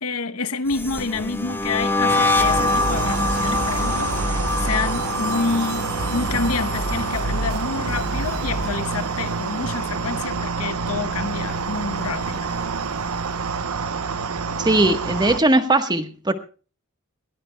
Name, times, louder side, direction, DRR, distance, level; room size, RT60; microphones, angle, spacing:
voice 1, 0.0-12.5, left 4 dB, 80° left, 0.9 m, -28 dB
sound 1, 0.7-9.9 10.1-10.6 10.9-12.4, left 2 dB, 10° left, 0.9 m, -26 dB
sound 2, 2.1-15.4, right 5 dB, 85° right, 0.8 m, -28 dB
sound 3, 2.4-8.7, right 1 dB, 50° right, 3.6 m, -29 dB
voice 2, 14.6-16.3, right 2 dB, 20° right, 1.2 m, -19 dB
21.5 x 17.5 x 2.2 m
head